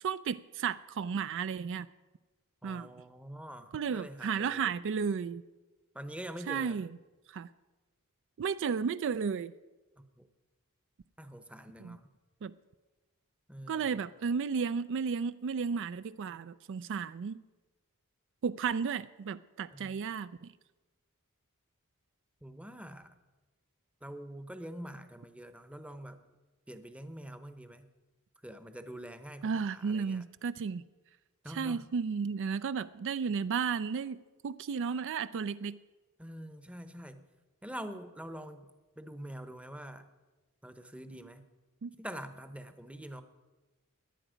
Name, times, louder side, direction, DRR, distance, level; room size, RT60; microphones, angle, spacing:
voice 1, 0.0-1.9 2.6-2.9 3.7-5.4 6.5-7.0 7.3-7.5 8.4-9.5 11.8-12.0 12.4-12.5 13.7-17.4 18.4-20.5 29.4-30.8 31.5-35.8 41.8-41.9, right 6 dB, 55° right, 15 dB, 0.4 m, -33 dB
voice 2, 2.6-4.7 5.9-6.8 10.2-10.3 11.2-12.0 13.5-14.0 19.7-19.9 22.4-23.1 24.0-26.2 26.7-27.9 28.4-30.2 31.4-31.8 36.2-37.2 37.6-38.7 39.0-40.1 40.6-41.5 42.0-43.2, right 1 dB, 5° right, 10 dB, 0.8 m, -45 dB
17.5 x 11.0 x 5.1 m, 1.2 s
head